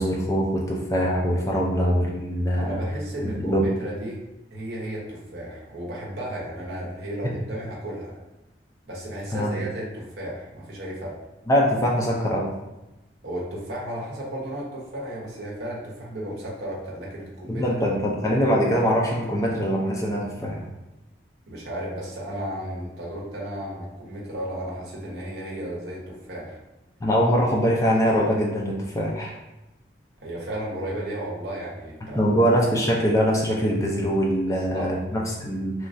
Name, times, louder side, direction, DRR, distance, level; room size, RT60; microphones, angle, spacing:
voice 1, 0.0-2.8 3.2-3.7 7.2-7.3 9.3-9.6 11.5-12.5 17.5-20.6 27.0-29.3 32.2-35.9, equal, 15° left, -2 dB, 0.3 m, -23 dB
voice 2, 2.6-4.2 4.5-8.1 8.8-11.2 13.2-17.6 21.5-26.6 30.2-32.3 34.5-34.9, right 1 dB, 65° right, -4 dB, 0.8 m, -34 dB
3.0 x 2.3 x 2.5 m, 1.0 s
head